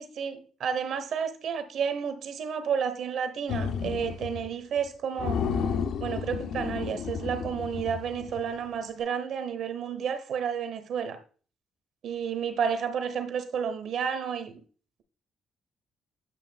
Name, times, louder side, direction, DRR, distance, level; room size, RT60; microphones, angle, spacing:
voice 1, 0.0-5.4 6.0-11.2 12.0-14.6, right 7 dB, 70° right, 0.9 m, -31 dB
sound 1, 3.5-4.5 4.8-4.9 5.2-8.6, left 6 dB, 75° left, 0.6 m, -32 dB
8.8 x 5.7 x 2.3 m
cardioid pair, 90°, 0 cm